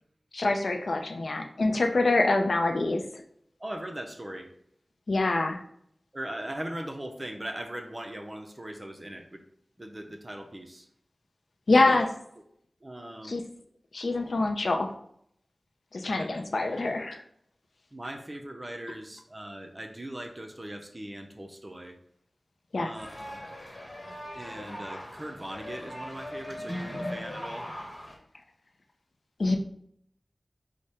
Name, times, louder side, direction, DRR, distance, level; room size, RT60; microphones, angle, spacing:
voice 1, 0.3-3.0 5.1-5.6 11.7-12.1 13.3-13.4 13.9-14.9 15.9-17.2 22.7-22.9 29.4-29.6, left 2 dB, 80° left, 5 dB, 0.5 m, -25 dB
voice 2, 3.6-4.5 6.1-9.4 9.8-10.9 11.7-12.0 12.8-13.4 16.1-16.3 17.9-22.0 22.8-23.4 24.3-27.7, right 1 dB, 30° right, 4 dB, 0.6 m, -39 dB
sound 1, 23.0-28.2, left 1 dB, 40° left, 1.2 m, -39 dB
4.8 x 2.1 x 4.2 m, 0.69 s
wide cardioid pair, 60°, 0 cm